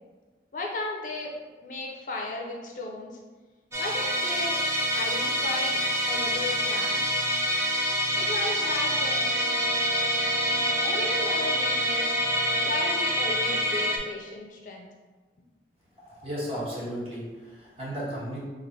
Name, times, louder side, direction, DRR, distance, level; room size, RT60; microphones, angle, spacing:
voice 1, 0.5-1.3 1.6-3.2 3.8-4.6 4.9-5.8 6.1-7.1 8.2-9.3 10.4-12.1 12.6-14.9, left 2 dB, 45° left, -1 dB, 0.4 m, -35 dB
Musical instrument, 3.7-14.0, equal, 15° right, 0.4 m, -26 dB
Brass instrument, 8.9-13.0, right 4 dB, 55° right, 0.7 m, -38 dB
voice 2, 16.1-18.4, equal, 35° right, -8 dB, 1.1 m, -34 dB
3.1 x 2.5 x 4.0 m, 1.3 s
head